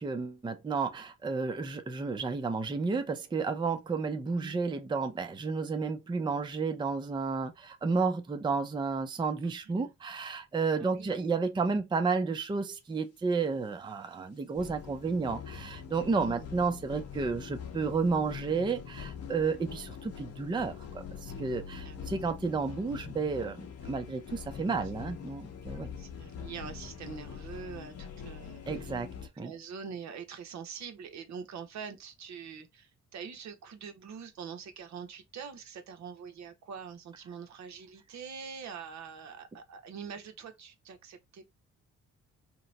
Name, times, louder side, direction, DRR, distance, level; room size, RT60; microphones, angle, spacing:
voice 1, 0.0-25.9 28.7-29.1 29.4-29.5, right 4 dB, 15° right, 0.5 m, -32 dB
voice 2, 4.3-4.6 9.6-9.9 10.8-11.2 16.2-16.5 21.8-22.0 25.7-29.0 29.4-41.5, right 6 dB, 65° right, 0.9 m, -44 dB
sound 1, 14.5-29.3, left 7 dB, 55° left, 0.8 m, -44 dB
2.9 x 2.1 x 3.9 m
cardioid pair, 90°, 30 cm